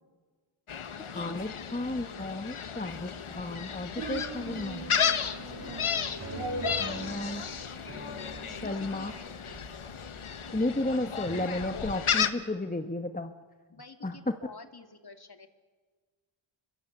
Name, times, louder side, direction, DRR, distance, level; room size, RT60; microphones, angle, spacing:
Gull seagull, 0.7-12.3, left 7 dB, 80° left, 1.2 m, -34 dB
voice 1, 1.1-4.9 6.8-7.4 8.6-9.1 10.5-13.3 14.0-14.3, left 2 dB, 15° left, 7 dB, 1.2 m, -33 dB
sound 1, 4.0-10.5, right 3 dB, 75° right, 2.7 m, -42 dB
sound 2, 5.6-10.9 11.3-11.5, right 2 dB, 30° right, 3.3 m, -46 dB
voice 2, 6.7-7.1 8.4-9.8 13.7-15.5, left 4 dB, 50° left, 6 dB, 2.4 m, -49 dB
29.0 x 23.0 x 7.3 m, 1.5 s
wide cardioid pair, 60°, 49 cm